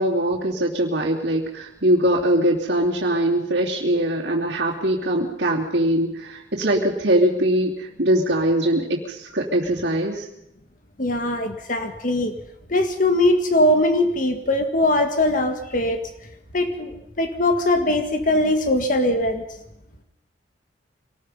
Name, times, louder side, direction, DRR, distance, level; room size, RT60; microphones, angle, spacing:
voice 1, 0.0-10.3, right 1 dB, 65° right, -8 dB, 3.0 m, -22 dB
voice 2, 11.0-12.3 12.7-16.1 16.5-19.4, left 1 dB, 45° left, 6 dB, 1.8 m, -21 dB
25.5 x 19.5 x 5.5 m, 0.82 s
head